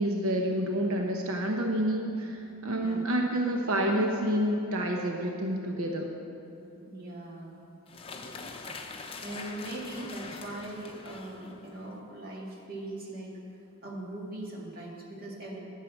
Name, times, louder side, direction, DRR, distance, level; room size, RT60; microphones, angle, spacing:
voice 1, 0.0-6.1, right 1 dB, 85° right, 1 dB, 0.9 m, -28 dB
voice 2, 6.9-7.6 9.2-13.4 13.8-15.6, right 1 dB, 45° right, -3 dB, 2.1 m, -40 dB
sound 1, 7.9-12.0, left 3 dB, 25° left, 0.7 m, -43 dB
11.0 x 6.6 x 8.5 m, 2.9 s
head